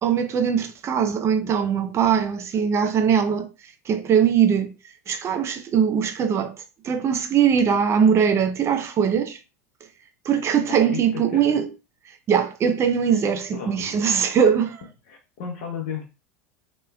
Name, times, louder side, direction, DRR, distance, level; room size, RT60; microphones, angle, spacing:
voice 1, 0.0-3.5 3.9-4.7 5.1-6.5 6.8-9.4 10.2-11.7 12.3-14.8, right 7 dB, 35° right, 0.6 m, -21 dB
voice 2, 10.7-11.6 13.5-14.0 15.1-16.0, left 7 dB, 60° left, 0.8 m, -34 dB
3.2 x 3.1 x 2.2 m
hypercardioid pair, 85°, 8 cm